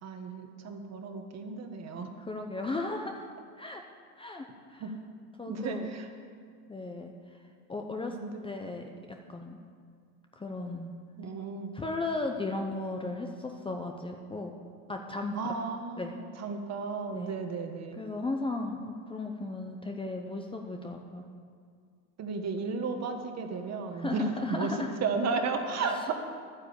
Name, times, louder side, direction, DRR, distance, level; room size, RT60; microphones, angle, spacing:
voice 1, 0.0-2.1 4.8-4.9 5.5-6.1 8.0-8.4 11.2-11.7 15.3-18.0 22.2-24.7 25.0-26.1, right 4 dB, 35° right, 5 dB, 1.5 m, -34 dB
voice 2, 2.2-3.3 3.6-3.8 4.2-4.8 5.4-5.9 6.7-7.1 7.7-8.2 8.4-9.6 10.4-10.9 11.7-14.6 14.9-15.4 16.0-16.2 17.1-17.3 17.9-21.2 23.9-24.9 25.8-26.0, left 2 dB, 10° left, 3 dB, 0.7 m, -36 dB
11.5 x 9.7 x 7.0 m, 2.1 s
supercardioid pair, 120°, 43 cm